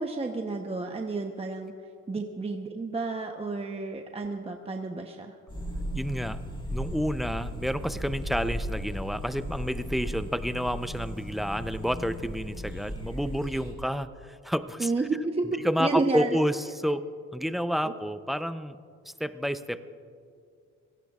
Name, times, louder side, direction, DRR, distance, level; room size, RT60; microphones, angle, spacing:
voice 1, 0.0-1.7 2.1-5.3 14.8-15.5 15.8-16.3 17.8-17.9, right 3 dB, 20° right, 4 dB, 0.9 m, -30 dB
sound 1, 5.5-13.7, equal, 15° left, 4.3 m, -36 dB
voice 2, 5.9-6.4 6.7-14.9 15.6-18.8 19.0-19.8, equal, ahead, 12 dB, 0.5 m, -30 dB
25.0 x 17.0 x 2.4 m, 2.3 s
cardioid pair, 90°, 30 cm